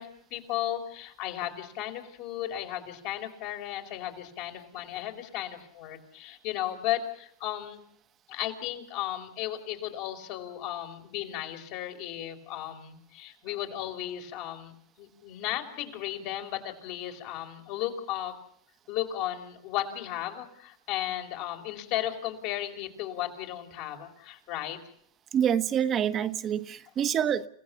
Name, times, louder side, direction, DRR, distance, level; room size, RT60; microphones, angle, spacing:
voice 1, 0.0-7.8 8.3-14.7 15.0-18.3 18.9-24.8, left 12 dB, 60° left, 4.7 m, -35 dB
voice 2, 25.3-27.5, right 9 dB, 35° right, 1.3 m, -26 dB
29.5 x 16.5 x 7.1 m
hypercardioid pair, 100°, 0 cm